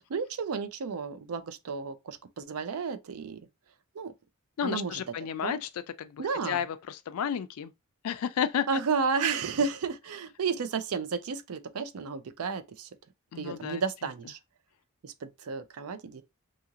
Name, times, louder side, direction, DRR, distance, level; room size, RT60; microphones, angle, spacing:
voice 1, 0.1-3.5 4.0-4.1 4.6-5.0 5.4-5.6 6.2-6.6 8.7-12.9 13.3-14.4 15.0-16.2, right 5 dB, 75° right, 0.4 m, -32 dB
voice 2, 4.6-5.7 6.0-7.7 8.0-8.7 13.3-13.8, left 8 dB, 75° left, 0.4 m, -32 dB
2.8 x 2.5 x 2.7 m
head